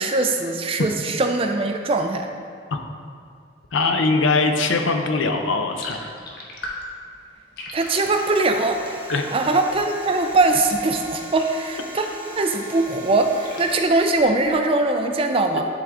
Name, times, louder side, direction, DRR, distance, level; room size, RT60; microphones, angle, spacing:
voice 1, 0.0-2.3 7.7-9.0 9.3-12.0 12.4-15.7, right 2 dB, 30° right, 5 dB, 0.4 m, -21 dB
voice 2, 3.7-6.1 9.1-9.2, left 3 dB, 80° left, 5 dB, 0.6 m, -21 dB
sound 1, 5.7-12.3 12.6-14.7, left 1 dB, 55° left, 1.1 m, -40 dB
sound 2, 7.8-13.8, right 1 dB, 10° right, 1.0 m, -39 dB
11.0 x 3.7 x 3.6 m, 2.2 s
head